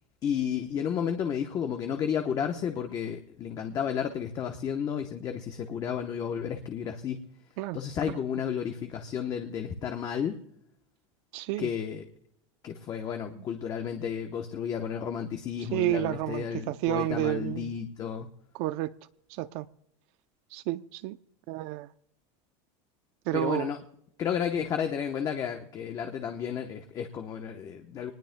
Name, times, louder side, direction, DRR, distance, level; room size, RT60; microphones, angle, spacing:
voice 1, 0.2-7.2 7.7-10.4 11.6-12.1 12.6-18.3 23.3-23.8 24.2-28.1, left 8 dB, 25° left, 0.9 m, -32 dB
voice 2, 11.3-11.7 15.7-17.7 18.5-18.9 19.4-19.7 20.5-21.2 21.5-21.9 23.3-23.7, right 16 dB, 40° right, 0.5 m, -30 dB
25.5 x 19.5 x 2.2 m
supercardioid pair, 175°, 16 cm